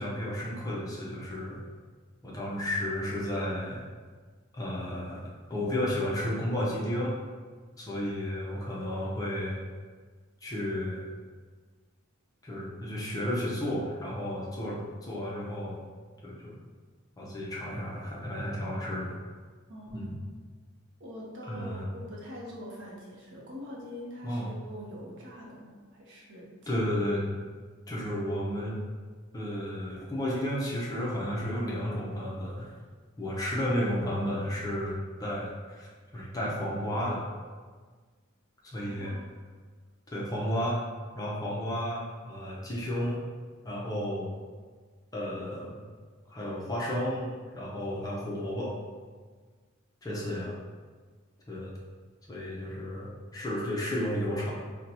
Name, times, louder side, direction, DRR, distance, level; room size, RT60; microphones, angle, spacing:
voice 1, 0.0-1.6 2.2-3.8 4.5-5.2 5.5-7.2 7.8-9.6 10.4-11.0 12.4-15.8 16.2-16.6 17.2-19.1 19.9-20.1 21.5-21.9 24.2-24.5 26.7-27.2 27.9-28.8 29.3-32.7 33.2-34.9 35.2-35.9 36.1-37.3 38.6-39.1 40.1-40.8 41.1-43.2 43.6-44.3 45.1-45.8 46.3-48.8 50.0-50.6 51.5-51.7 52.3-54.5, equal, 15° left, -5 dB, 0.5 m, -32 dB
voice 2, 19.7-20.3 21.0-26.9 38.7-39.2 40.4-40.6, equal, 55° right, -4 dB, 0.7 m, -44 dB
2.7 x 2.2 x 4.0 m, 1.5 s
head